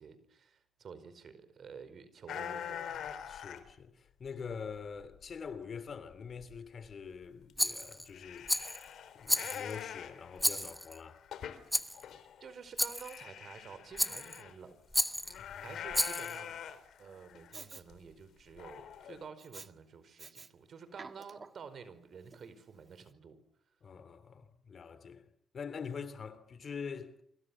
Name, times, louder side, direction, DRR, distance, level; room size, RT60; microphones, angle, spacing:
voice 1, 0.0-3.0 12.4-14.8 15.1-16.5 17.0-23.4, right 6 dB, 55° right, 4.9 m, -50 dB
sound 1, 2.3-3.7 4.2-5.2 5.5-5.6 6.1-6.2 6.4-6.6 6.8-6.9 7.5-7.6 7.9-12.5 12.9-14.5 15.2-17.6 17.9-18.0 18.6-19.2, left 9 dB, 70° left, 3.5 m, -44 dB
voice 2, 3.3-8.5 9.1-11.2 15.4-15.7 23.8-25.2 25.5-27.2, left 6 dB, 45° left, 3.1 m, -44 dB
Rattle, 7.6-8.1 8.5-8.8 9.3-9.8 10.4-11.0 11.7-12.0 12.8-13.2 14.0-14.4 14.9-15.4 15.9-16.4, equal, ahead, 1.3 m, -32 dB
Respiratory sounds, 17.5-17.8 19.4-19.7 20.2-20.5 20.9-21.7 22.3-22.4, right 4 dB, 35° right, 1.6 m, -49 dB
28.0 x 25.5 x 7.3 m
cardioid pair, 90°, 0 cm